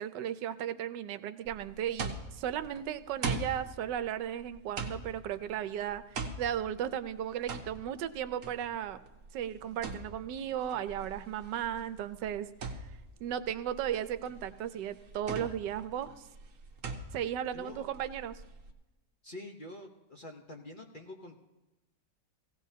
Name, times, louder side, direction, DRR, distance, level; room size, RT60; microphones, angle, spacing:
voice 1, 0.0-9.0 9.3-12.5 13.2-16.1 17.1-18.4, right 10 dB, 85° right, 12 dB, 1.3 m, -35 dB
sound 1, 1.4-18.7, right 4 dB, 50° right, 1.4 m, -42 dB
voice 2, 17.5-17.9 19.2-21.3, left 1 dB, 35° left, 2 dB, 0.9 m, -46 dB
17.5 x 16.5 x 2.8 m, 1.0 s
omnidirectional pair, 1.9 m